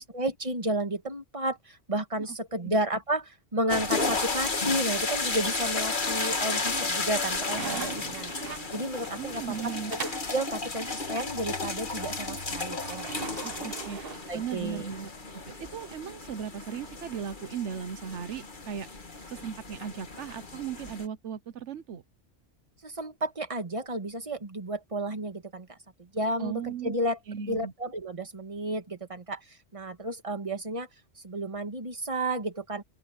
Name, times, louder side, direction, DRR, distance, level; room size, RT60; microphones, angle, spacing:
voice 1, 0.0-8.3 8.7-10.0 10.3-13.7 14.3-14.9 22.8-30.9 31.2-32.8, right 1 dB, 30° right, 1.9 m, -32 dB
sound 1, 3.7-21.1, left 3 dB, 45° left, 2.0 m, -33 dB
sound 2, 5.7-6.3 6.7-10.4 12.8-14.9, right 7 dB, 55° right, 1.2 m, -41 dB
voice 2, 9.2-9.9 13.4-18.9 19.3-22.0 26.4-26.9 27.3-27.7, right 7 dB, 85° right, 1.2 m, -37 dB
open air
omnidirectional pair, 1.2 m